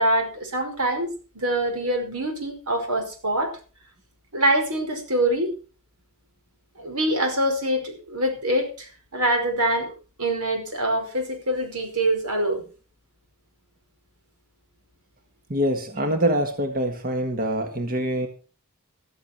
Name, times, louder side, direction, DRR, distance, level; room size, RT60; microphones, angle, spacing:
voice 1, 0.0-3.6 4.3-5.5 6.8-9.9 10.2-12.6, right 1 dB, 85° right, 5.2 m, -24 dB
voice 2, 15.5-18.3, right 1 dB, 40° right, 1.7 m, -24 dB
14.0 x 14.0 x 4.5 m
head